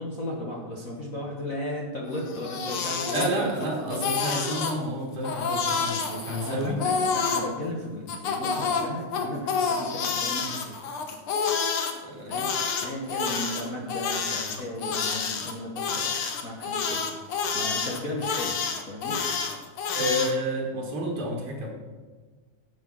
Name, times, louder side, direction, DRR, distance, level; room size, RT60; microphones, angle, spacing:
voice 1, 0.0-4.0 6.4-10.8 12.3-12.5 12.8-18.6 18.8-19.2, left 1 dB, 90° left, -1 dB, 0.7 m, -35 dB
Crying sobbing, 2.2-3.7 3.9-4.8 5.2-7.5 8.1-11.9 12.3-20.3, left 5 dB, 60° left, 1.6 m, -28 dB
voice 2, 3.1-6.9 11.4-11.6 12.0-12.5 19.9-21.7, equal, 80° right, -1 dB, 3.2 m, -30 dB
9.5 x 7.9 x 6.1 m, 1.4 s
omnidirectional pair, 3.4 m